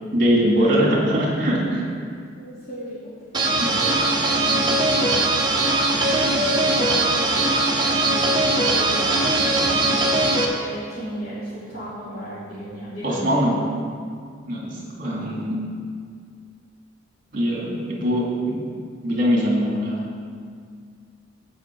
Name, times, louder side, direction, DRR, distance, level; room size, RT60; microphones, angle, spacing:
voice 1, 0.1-1.9 3.6-3.8 13.0-13.6 14.5-15.6 17.3-18.6 19.0-20.0, equal, 50° right, -3 dB, 2.6 m, -22 dB
voice 2, 2.4-3.1 3.6-4.6 6.6-7.5 8.1-13.5, right 1 dB, 55° left, -13 dB, 2.8 m, -35 dB
sound 1, 3.3-10.5, right 2 dB, 25° right, 1.1 m, -20 dB
15.5 x 5.4 x 4.8 m, 2.2 s
head